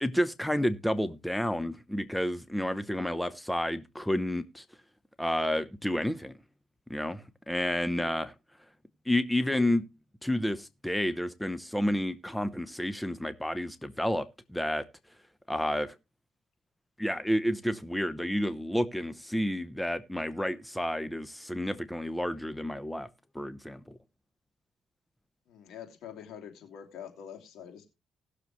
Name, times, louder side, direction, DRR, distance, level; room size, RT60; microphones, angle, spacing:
voice 1, 0.0-4.6 5.2-6.3 6.9-8.3 9.1-9.8 10.2-14.8 15.5-15.9 17.0-23.1 23.3-24.0, left 1 dB, 5° left, 0.9 m, -30 dB
voice 2, 25.5-27.9, left 8 dB, 80° left, 3.0 m, -45 dB
19.0 x 6.8 x 3.1 m
cardioid pair, 90°, 0 cm